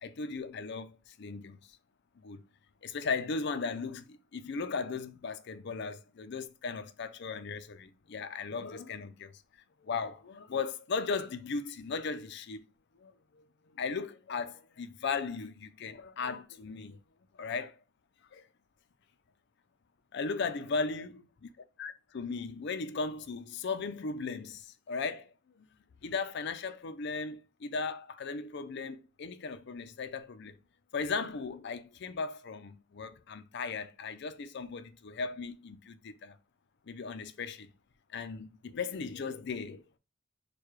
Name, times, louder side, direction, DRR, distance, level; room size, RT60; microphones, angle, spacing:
voice 1, 0.0-1.6 2.2-2.4 2.8-9.4 9.8-12.6 13.0-13.4 13.7-17.0 17.4-17.8 18.3-18.4 20.1-21.1 21.8-25.3 26.0-30.5 30.9-36.4 36.9-37.7 38.1-40.0, left 4 dB, 60° left, 0.5 m, -37 dB
6.5 x 2.3 x 3.1 m
head